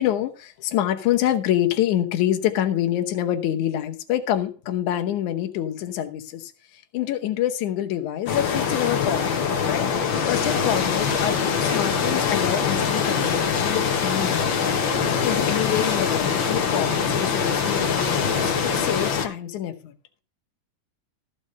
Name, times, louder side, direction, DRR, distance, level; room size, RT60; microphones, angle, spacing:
voice 1, 0.0-14.5 15.2-19.9, left 11 dB, 75° left, 6 dB, 2.4 m, -26 dB
sound 1, 8.3-19.3, left 6 dB, 50° left, 1.6 m, -23 dB
14.0 x 5.5 x 6.2 m, 0.37 s
omnidirectional pair, 3.6 m